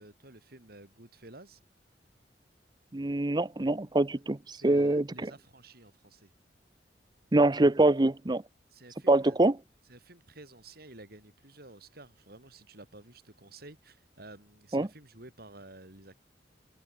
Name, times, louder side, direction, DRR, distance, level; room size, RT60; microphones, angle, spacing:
voice 1, 0.0-1.6 4.5-6.3 8.7-9.4 9.8-16.2, right 2 dB, 60° right, 5.7 m, -51 dB
voice 2, 2.9-5.0 7.3-8.4 9.1-9.5 14.7-14.9, right 2 dB, 25° right, 0.7 m, -24 dB
head